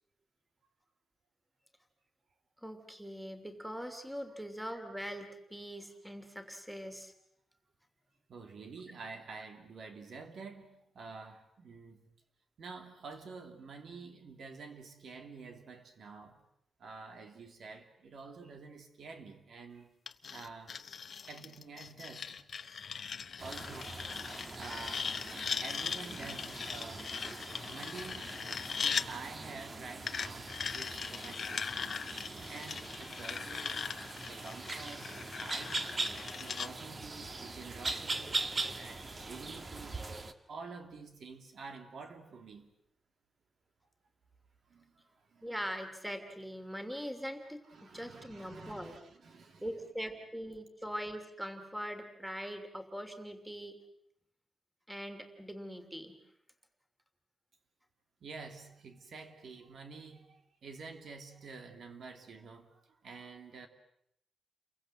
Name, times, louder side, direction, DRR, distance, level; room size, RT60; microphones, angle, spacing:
voice 1, 2.6-7.1 45.4-47.6 47.9-49.0 49.6-53.8 54.9-56.1, equal, 5° right, 2.9 m, -42 dB
voice 2, 8.3-12.1 12.6-16.4 16.8-19.9 20.3-20.7 21.2-22.5 23.4-24.1 24.5-25.1 25.6-27.1 27.7-28.4 28.8-32.0 32.4-36.0 36.4-40.2 40.5-42.7 44.7-45.5 47.7-49.7 58.2-63.7, right 4 dB, 60° right, 2.9 m, -49 dB
sound 1, 20.1-29.1 30.1-36.7, left 6 dB, 50° left, 1.1 m, -40 dB
sound 2, 23.4-40.3, right 3 dB, 30° right, 1.6 m, -41 dB
29.5 x 23.0 x 7.6 m
wide cardioid pair, 150°, 0 cm